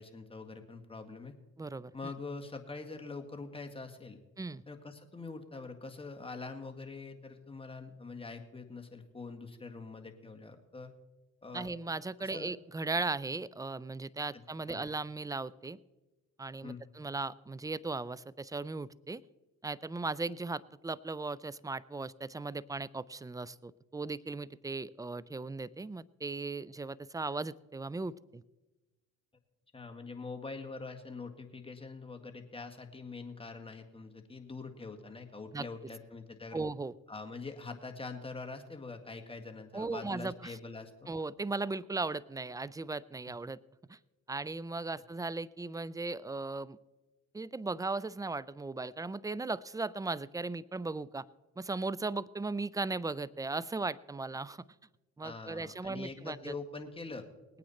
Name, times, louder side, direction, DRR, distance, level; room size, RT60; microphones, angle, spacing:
voice 1, 0.0-1.3 1.9-4.2 4.7-10.9 11.4-11.7 12.2-12.5 14.3-14.9 16.6-16.8 29.7-36.6 37.1-41.1 55.2-57.3, left 3 dB, 15° left, 4 dB, 1.9 m, -44 dB
voice 2, 1.6-1.9 4.4-4.6 11.5-15.8 16.4-19.2 19.6-28.4 35.5-35.6 36.5-36.9 39.7-40.6 41.1-43.6 43.9-44.0 44.3-46.8 47.3-51.3 51.6-54.6 55.2-56.5, right 3 dB, 10° right, 21 dB, 0.4 m, -37 dB
20.0 x 9.1 x 4.3 m, 1.1 s
supercardioid pair, 70°, 33 cm